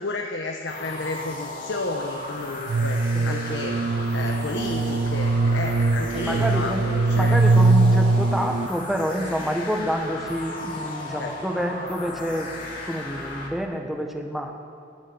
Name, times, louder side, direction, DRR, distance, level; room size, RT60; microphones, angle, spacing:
voice 1, 0.0-3.8 4.1-7.4 11.2-11.3, left 3 dB, 75° left, 2 dB, 1.0 m, -32 dB
sound 1, 0.7-13.5, left 2 dB, 50° left, 2.8 m, -36 dB
sound 2, 2.7-8.7, right 3 dB, 60° right, 0.4 m, -21 dB
voice 2, 3.1-3.6 6.1-6.9 7.1-14.5, equal, ahead, 3 dB, 1.3 m, -28 dB
16.5 x 7.4 x 9.8 m, 2.4 s
head